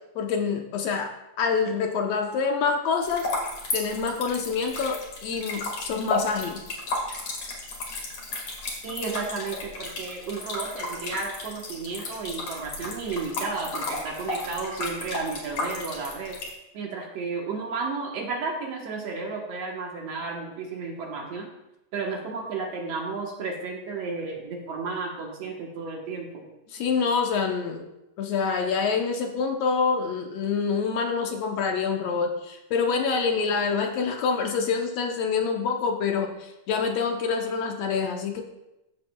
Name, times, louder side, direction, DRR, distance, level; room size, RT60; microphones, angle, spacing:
voice 1, 0.1-1.1 1.4-3.3 3.7-6.6 26.7-27.9 28.2-38.4, left 5 dB, 75° left, 3 dB, 1.6 m, -26 dB
sound 1, 3.0-16.5, left 2 dB, 50° left, 2.6 m, -33 dB
voice 2, 8.8-16.4 16.7-21.5 21.9-26.4, right 4 dB, 65° right, 0 dB, 1.9 m, -33 dB
15.0 x 7.4 x 2.2 m, 0.93 s
omnidirectional pair, 3.7 m